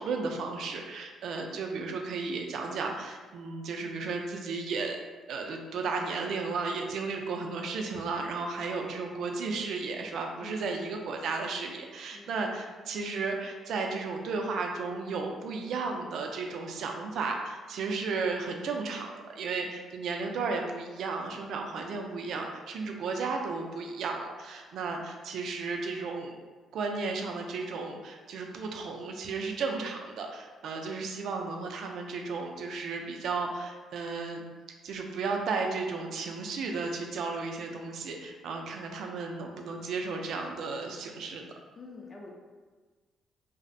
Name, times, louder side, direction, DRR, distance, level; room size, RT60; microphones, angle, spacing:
voice 1, 0.0-5.0 5.3-26.4 26.7-34.4 34.8-41.5, right 4 dB, 70° right, 3 dB, 0.3 m, -34 dB
voice 2, 10.4-10.9 12.1-12.4 41.8-42.3, left 3 dB, 35° left, 0 dB, 0.4 m, -47 dB
2.5 x 2.0 x 2.5 m, 1.4 s
cardioid pair, 90°, 0 cm